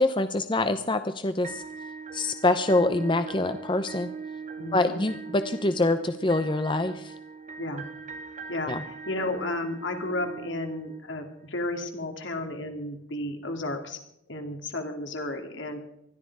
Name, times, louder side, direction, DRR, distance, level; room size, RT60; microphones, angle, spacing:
voice 1, 0.0-1.6 2.1-4.1 4.7-7.1 8.7-8.8, left 2 dB, 25° left, 9 dB, 0.7 m, -25 dB
sound 1, 1.4-11.5, right 4 dB, 40° right, 1.1 m, -41 dB
voice 2, 4.6-5.0 7.6-7.8 8.5-14.0 14.3-15.8, left 2 dB, 75° left, 4 dB, 2.8 m, -33 dB
20.5 x 13.5 x 4.8 m, 0.78 s
head